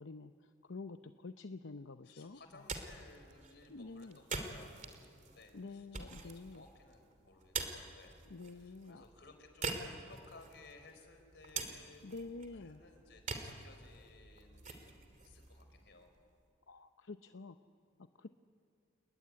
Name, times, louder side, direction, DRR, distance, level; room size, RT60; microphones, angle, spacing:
voice 1, 0.0-2.7 3.7-4.2 5.5-6.6 8.3-9.0 12.0-12.8 16.7-17.6 18.2-18.3, left 3 dB, 90° left, 8 dB, 0.7 m, -48 dB
voice 2, 2.0-8.2 8.5-16.1, left 3 dB, 65° left, 6 dB, 4.5 m, -59 dB
sound 1, 2.4-16.4, right 4 dB, 40° right, 2.9 m, -46 dB
30.0 x 20.5 x 9.7 m, 2.4 s
head